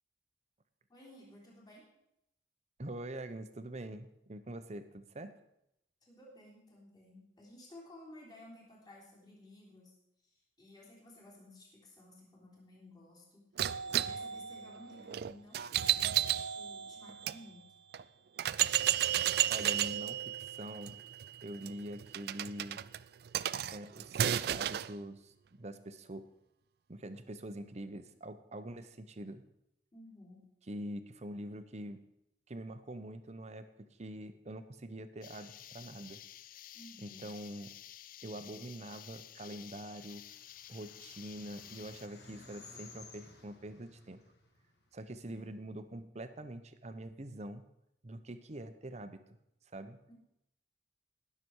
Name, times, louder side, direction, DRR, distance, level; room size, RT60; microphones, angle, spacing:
voice 1, 0.9-1.9 6.0-9.9 10.2-17.7 29.9-30.4 36.7-37.2 45.2-45.5 50.1-50.2, left 1 dB, 25° left, -4 dB, 3.4 m, -55 dB
voice 2, 2.8-5.3 19.5-21.0 21.4-22.8 23.7-26.2 26.9-29.4 30.7-32.0 32.5-33.7 34.0-36.2 37.0-37.7 38.2-40.2 40.7-44.2 44.9-47.7 48.0-49.2 49.7-50.0, right 1 dB, 40° right, 9 dB, 0.8 m, -44 dB
sound 1, 13.6-17.4 17.9-18.0 18.4-24.9, right 11 dB, 60° right, 0.3 m, -33 dB
sound 2, 35.2-42.1, left 11 dB, 50° left, 0.4 m, -52 dB
sound 3, 40.0-45.4, left 3 dB, 70° left, 1.7 m, -56 dB
19.5 x 6.9 x 4.7 m, 0.82 s
head